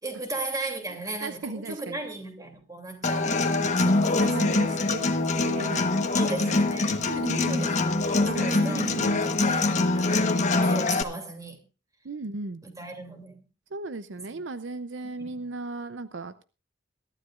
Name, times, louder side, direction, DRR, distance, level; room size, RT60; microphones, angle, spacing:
voice 1, 0.0-4.6 6.1-6.9 7.4-7.7 8.0-10.3 10.6-11.6 12.6-13.4 14.3-14.4 15.2-15.3, right 2 dB, 20° right, 2.8 m, -37 dB
voice 2, 0.9-2.0 3.8-9.2 12.0-12.6 13.7-16.4, right 3 dB, 70° right, 0.6 m, -37 dB
Human voice / Acoustic guitar, 3.0-11.0, left 2 dB, 40° left, 1.2 m, -24 dB
22.0 x 12.5 x 2.5 m
head